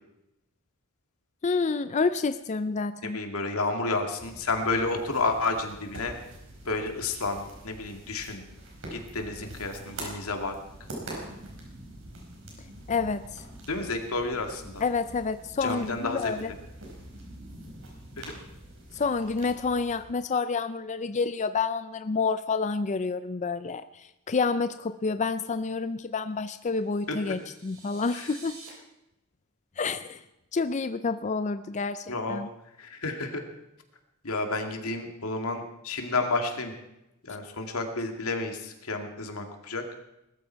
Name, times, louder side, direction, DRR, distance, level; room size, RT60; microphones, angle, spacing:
voice 1, 1.4-3.2 12.9-13.4 14.8-16.5 18.9-28.6 29.8-30.2 30.5-32.5, left 4 dB, 35° left, 12 dB, 0.4 m, -29 dB
voice 2, 3.1-6.2 6.7-8.5 8.9-10.5 13.7-14.8 15.6-16.5 18.2-18.3 27.1-27.3 28.1-28.3 32.1-32.4 32.8-33.4 34.2-36.7 37.2-39.8, left 3 dB, 85° left, 4 dB, 2.3 m, -31 dB
sound 1, 4.2-20.0, right 1 dB, 65° right, 5.0 m, -45 dB
sound 2, 26.8-28.7, right 4 dB, 80° right, 5.3 m, -49 dB
20.0 x 13.0 x 4.6 m, 0.89 s
head